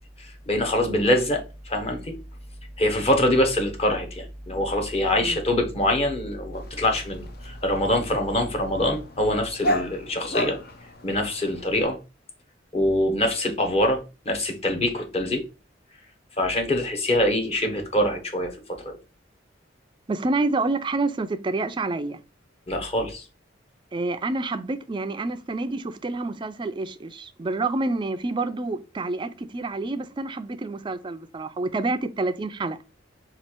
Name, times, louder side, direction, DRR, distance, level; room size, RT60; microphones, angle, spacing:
voice 1, 0.2-2.1 2.8-10.6 11.0-12.0 12.7-15.4 16.4-19.0 22.7-23.2, left 1 dB, 35° left, 1.0 m, -24 dB
Dog, 6.5-11.9, equal, 55° left, 0.7 m, -33 dB
voice 2, 20.1-22.2 23.9-32.8, right 3 dB, 25° right, 0.4 m, -28 dB
4.2 x 2.4 x 4.4 m
head